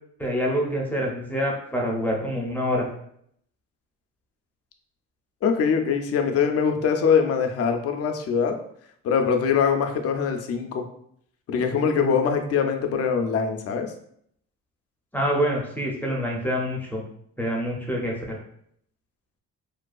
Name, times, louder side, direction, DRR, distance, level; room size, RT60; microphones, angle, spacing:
voice 1, 0.2-2.9 15.1-17.0 17.4-18.4, equal, 5° left, -2 dB, 0.5 m, -26 dB
voice 2, 5.4-8.5 9.0-10.8 11.5-13.9, left 6 dB, 50° left, 5 dB, 0.4 m, -23 dB
2.5 x 2.3 x 2.3 m, 0.68 s
cardioid pair, 90°, 30 cm